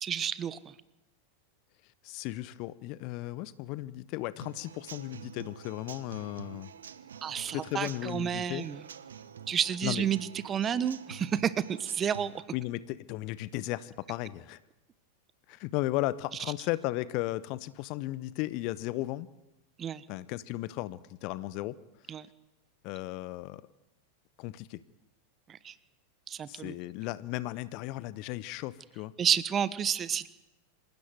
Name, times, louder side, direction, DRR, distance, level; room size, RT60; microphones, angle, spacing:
voice 1, 0.0-0.6 7.2-8.8 9.5-12.4 19.8-20.0 22.1-22.3 25.5-25.7 26.3-26.7 29.2-30.3, right 8 dB, 25° right, 17 dB, 1.2 m, -30 dB
voice 2, 2.0-6.7 7.5-8.7 9.8-10.1 12.5-14.6 15.5-19.3 20.1-21.8 22.8-23.6 24.4-24.8 26.5-29.1, left 17 dB, 45° left, 18 dB, 0.9 m, -35 dB
Human voice / Acoustic guitar / Drum, 4.4-12.4, right 8 dB, 65° right, 1.2 m, -48 dB
26.5 x 16.5 x 9.4 m, 0.97 s
figure-of-eight pair, 90°, 0 cm